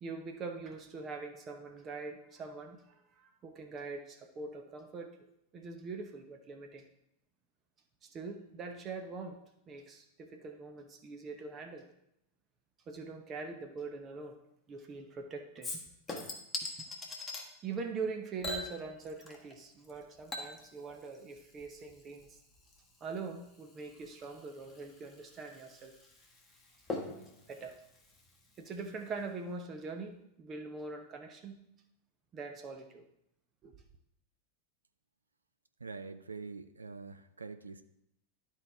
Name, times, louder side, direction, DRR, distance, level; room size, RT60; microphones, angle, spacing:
voice 1, 0.0-5.1 5.5-6.8 8.0-11.9 12.9-14.4 14.7-15.8 16.8-16.9 17.6-22.4 23.0-25.9 27.5-27.8 28.6-31.6 32.3-33.0 33.6-33.7, right 4 dB, 25° right, 5 dB, 0.8 m, -43 dB
Chink clink / Liquid, 15.6-17.5 18.4-19.6 19.8-28.9 29.2-29.3, left 2 dB, 15° left, 1.4 m, -44 dB
voice 2, 35.8-37.8, right 4 dB, 75° right, 10 dB, 0.4 m, -45 dB
12.0 x 4.5 x 3.5 m, 0.79 s
figure-of-eight pair, 90°, 0 cm